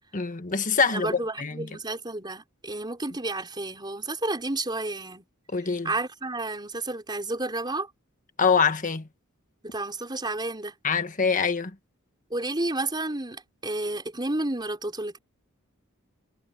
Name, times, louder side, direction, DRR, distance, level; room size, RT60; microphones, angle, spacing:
voice 1, 0.1-1.7 5.5-5.9 8.4-9.1 10.8-11.7, left 5 dB, 40° left, 1.5 m, -24 dB
voice 2, 0.9-5.3 5.8-7.9 9.6-10.7 12.3-15.2, right 2 dB, 20° right, 4.6 m, -31 dB
head